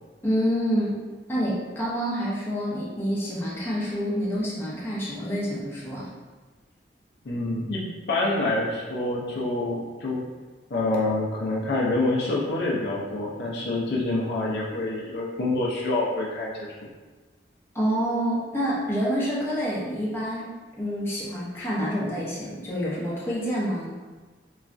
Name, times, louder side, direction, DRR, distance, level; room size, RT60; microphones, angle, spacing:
voice 1, 0.2-1.0 1.3-6.1 17.7-20.5 20.8-23.9, equal, 15° left, -8 dB, 0.7 m, -27 dB
voice 2, 7.2-10.2 10.7-16.7, left 2 dB, 65° left, -3 dB, 0.5 m, -27 dB
3.0 x 2.3 x 2.5 m, 1.3 s
head